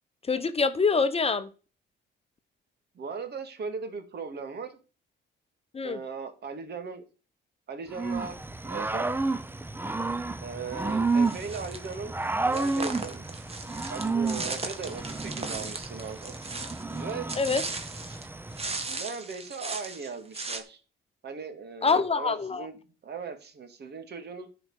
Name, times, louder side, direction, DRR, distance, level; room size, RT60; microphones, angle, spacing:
voice 1, 0.3-1.5 5.7-6.0 17.4-17.6 21.8-22.7, left 4 dB, 30° left, 11 dB, 0.9 m, -25 dB
voice 2, 2.9-4.7 5.8-7.0 7.7-8.3 8.6-9.1 10.4-12.2 12.4-13.2 13.9-16.4 16.9-17.7 18.9-20.8 21.2-22.8 23.0-24.5, right 5 dB, 55° right, 8 dB, 2.3 m, -38 dB
Growling / Cricket, 7.9-18.9, right 3 dB, 10° right, 0.7 m, -31 dB
sound 1, 11.2-11.9 12.5-18.3 18.5-20.6, right 3 dB, 30° right, 2.0 m, -37 dB
10.5 x 5.1 x 8.0 m, 0.35 s
cardioid pair, 90°, 20 cm